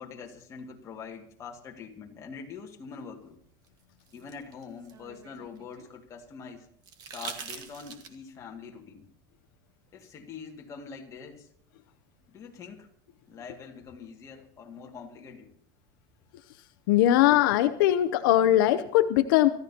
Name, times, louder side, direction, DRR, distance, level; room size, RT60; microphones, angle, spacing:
voice 1, 0.0-3.4 4.1-6.7 7.1-9.1 9.9-11.5 12.3-12.9 13.3-15.5, left 5 dB, 30° left, 1 dB, 2.2 m, -44 dB
sound 1, 3.7-5.9 6.8-8.4 10.0-10.1, right 6 dB, 35° right, 1.8 m, -43 dB
voice 2, 16.9-19.5, left 13 dB, 80° left, 11 dB, 0.7 m, -21 dB
24.5 x 14.0 x 2.9 m, 0.64 s
supercardioid pair, 150°, 11 cm